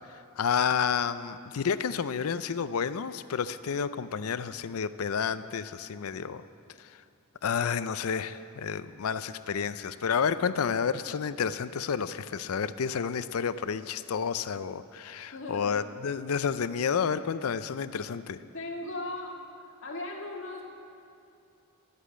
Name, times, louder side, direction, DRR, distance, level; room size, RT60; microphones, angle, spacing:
voice 1, 0.4-6.4 6.8-6.9 7.4-18.4, left 6 dB, 85° left, 14 dB, 0.5 m, -30 dB
voice 2, 15.3-15.8 18.5-19.4 19.8-20.6, left 2 dB, 60° left, -1 dB, 1.9 m, -37 dB
12.0 x 8.3 x 8.6 m, 2.7 s
head